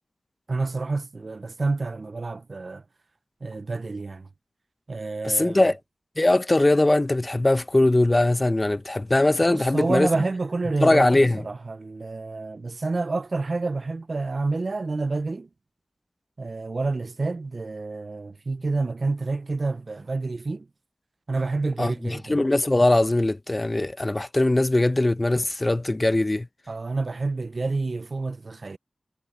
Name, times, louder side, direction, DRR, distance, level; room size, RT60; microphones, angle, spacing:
voice 1, 0.5-2.8 3.4-4.3 4.9-5.7 9.5-11.1 11.4-15.5 16.4-20.7 21.3-22.4 26.7-28.8, right 3 dB, 55° right, 0.5 m, -28 dB
voice 2, 5.2-5.8 6.2-10.1 10.8-11.4 21.8-26.5, left 2 dB, 30° left, 0.8 m, -21 dB
wide cardioid pair, 60°, 0 cm